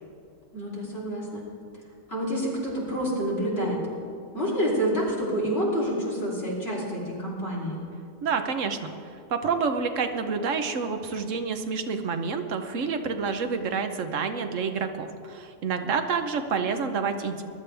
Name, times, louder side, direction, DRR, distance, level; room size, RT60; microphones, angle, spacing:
voice 1, 0.5-1.4 2.1-3.8 4.3-7.8, equal, 45° left, -6 dB, 3.4 m, -28 dB
voice 2, 8.2-17.4, right 5 dB, 65° right, 7 dB, 1.2 m, -28 dB
21.0 x 11.5 x 3.4 m, 2.4 s
omnidirectional pair, 1.4 m